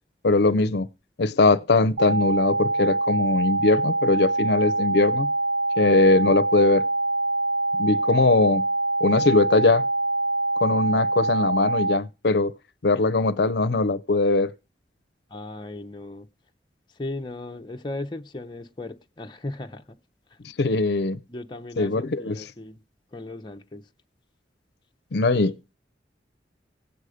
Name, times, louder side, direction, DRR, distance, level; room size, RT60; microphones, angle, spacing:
voice 1, 0.2-0.9 1.2-5.3 5.8-6.9 7.8-8.6 9.0-9.9 10.6-12.5 12.8-14.5 20.6-21.2 21.8-22.3 25.1-25.5, left 3 dB, 65° left, 0.6 m, -21 dB
sound 1, 2.0-12.0, right 2 dB, 70° right, 0.5 m, -24 dB
voice 2, 15.3-16.3 16.9-20.0 20.3-20.4 21.3-22.8 23.1-23.9, left 2 dB, 25° left, 0.6 m, -37 dB
16.5 x 8.1 x 4.9 m
head